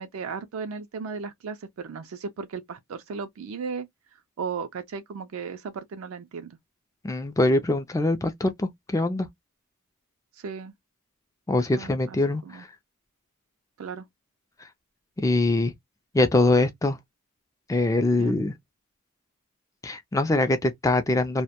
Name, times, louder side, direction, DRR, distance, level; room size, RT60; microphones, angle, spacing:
voice 1, 0.0-3.9 4.4-6.6 10.4-10.7 11.7-12.2 12.4-12.7 13.8-14.1 18.2-18.4, right 5 dB, 65° right, 0.4 m, -35 dB
voice 2, 7.0-9.3 11.5-12.7 15.2-15.7 16.1-17.0 17.7-18.5 19.8-21.4, left 2 dB, 15° left, 0.3 m, -23 dB
2.1 x 2.1 x 2.7 m
head